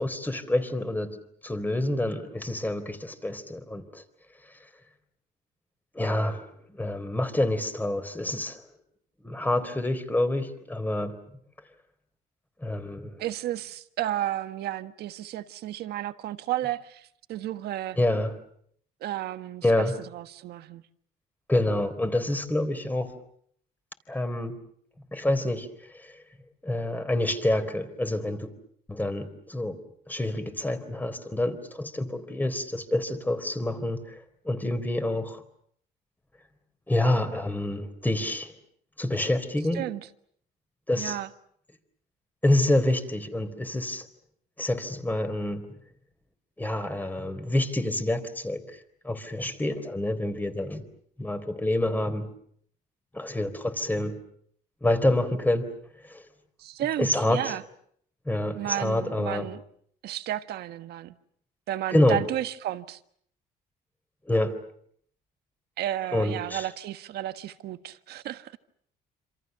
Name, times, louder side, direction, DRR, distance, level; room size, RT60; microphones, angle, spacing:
voice 1, 0.0-4.0 5.9-8.6 9.2-11.2 12.6-13.1 18.0-18.3 19.6-19.9 21.5-23.1 24.1-24.6 25.1-25.7 25.9-26.1 26.6-28.5 28.9-29.8 30.1-34.2 34.4-35.4 36.9-38.5 39.0-39.9 40.9-41.2 42.4-44.1 44.6-45.7 46.6-48.6 49.0-50.8 51.2-52.3 53.1-54.2 54.8-55.7 56.1-56.2 57.0-57.6 58.3-59.5 61.9-62.2 64.3-64.6 66.1-66.7, left 1 dB, 10° left, 3.9 m, -27 dB
voice 2, 13.2-18.0 19.0-19.9 20.1-20.8 39.7-40.0 40.9-41.3 56.6-57.6 58.5-59.6 60.0-61.2 61.7-63.0 65.8-68.6, right 13 dB, 75° right, 1.5 m, -32 dB
27.5 x 27.0 x 6.8 m
cardioid pair, 110°, 17 cm